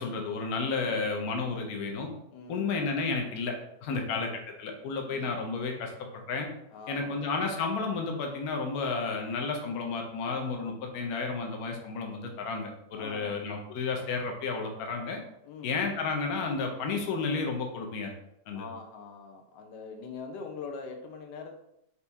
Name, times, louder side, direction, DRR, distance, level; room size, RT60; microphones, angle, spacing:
voice 1, 0.0-2.1 2.5-3.6 3.8-5.9 6.3-6.5 6.9-15.2 15.6-18.1 18.5-18.7, left 4 dB, 70° left, 2 dB, 1.1 m, -32 dB
voice 2, 1.3-1.7 2.3-2.7 3.9-4.2 5.0-5.3 6.7-7.2 13.0-13.4 15.4-15.8 18.5-21.6, left 4 dB, 90° left, 3 dB, 1.2 m, -43 dB
4.4 x 2.6 x 3.4 m, 0.80 s
omnidirectional pair, 1.8 m